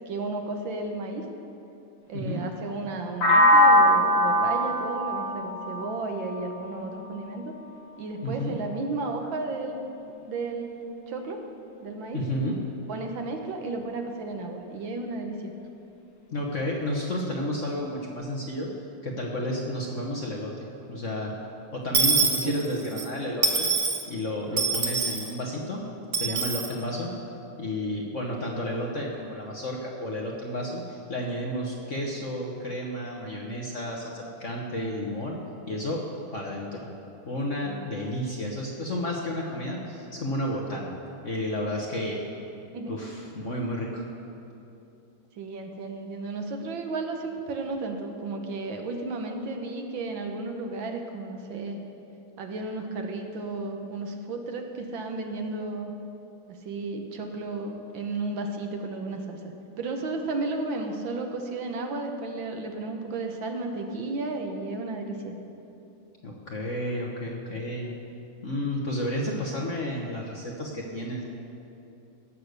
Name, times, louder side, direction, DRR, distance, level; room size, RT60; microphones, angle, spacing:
voice 1, 0.1-1.3 2.1-7.6 8.0-9.9 10.3-11.4 11.8-12.2 12.9-15.5 22.4-22.6 37.7-37.8 42.7-43.0 45.4-51.8 52.4-55.9 56.5-65.4, right 3 dB, 65° right, 4 dB, 1.6 m, -33 dB
voice 2, 2.1-2.5 8.2-8.6 12.1-12.6 16.3-18.7 19.0-20.5 20.9-21.3 21.7-23.7 24.1-25.8 26.1-27.1 27.6-35.4 35.7-36.1 36.3-36.9 37.3-40.9 41.2-42.2 42.9-44.0 66.2-67.9 68.4-71.2, left 1 dB, 45° left, -1 dB, 1.1 m, -31 dB
sound 1, 3.2-7.1, equal, 80° left, 2.8 m, -21 dB
Dishes pots and pans / Coin (dropping), 21.9-23.0 23.4-24.0 24.6-25.3 26.1-26.7, right 4 dB, 45° right, 1.1 m, -24 dB
17.0 x 6.7 x 6.6 m, 2.8 s
omnidirectional pair, 2.4 m